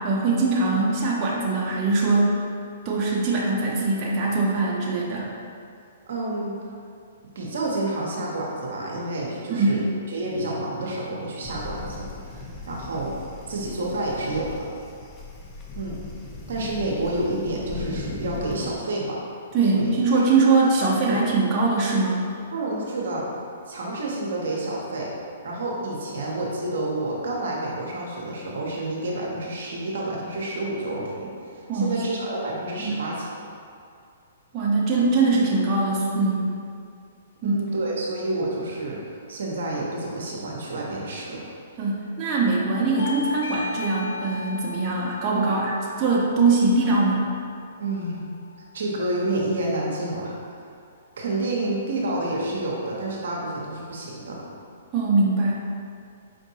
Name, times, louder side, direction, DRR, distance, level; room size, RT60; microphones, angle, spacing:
voice 1, 0.0-2.4 2.8-5.3 9.5-9.8 19.5-22.2 31.7-32.0 32.8-33.0 34.5-36.6 37.4-37.6 41.8-47.3 54.9-55.7, right 3 dB, 30° right, -5 dB, 0.6 m, -22 dB
voice 2, 6.1-6.6 7.4-9.8 10.1-12.0 12.3-13.1 13.5-14.7 15.8-16.0 16.5-19.2 19.7-19.9 21.1-21.2 22.5-23.2 23.7-25.1 25.4-33.3 37.4-39.0 39.3-41.4 47.8-48.3 48.7-50.3 51.2-54.4, right 2 dB, 70° right, -3 dB, 0.7 m, -29 dB
sound 1, 11.4-18.8, left 2 dB, 20° left, 0.5 m, -38 dB
Bell / Doorbell, 43.0-48.2, left 3 dB, 70° left, 0.5 m, -36 dB
4.7 x 2.6 x 2.7 m, 2.3 s
hypercardioid pair, 125°, 0 cm